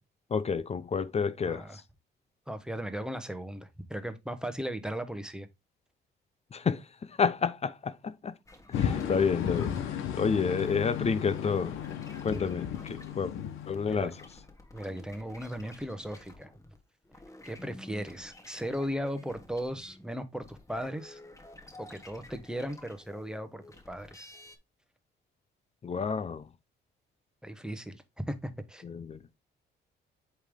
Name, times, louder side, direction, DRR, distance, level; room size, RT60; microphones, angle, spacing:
voice 1, 0.3-1.7 6.5-8.3 8.7-9.7 10.1-11.8 12.2-13.3 13.7-14.1 25.8-26.5 28.8-29.2, left 5 dB, 30° left, 0.5 m, -30 dB
voice 2, 1.4-1.8 2.5-5.5 12.3-12.5 13.8-14.1 14.7-16.5 17.4-21.2 21.8-24.4 27.4-28.8, equal, 5° right, 1.0 m, -37 dB
sound 1, 8.5-16.8 17.0-24.6, left 1 dB, 15° left, 1.4 m, -52 dB
sound 2, 8.7-14.4, left 9 dB, 85° left, 1.0 m, -34 dB
8.2 x 3.4 x 3.6 m
cardioid pair, 90°, 20 cm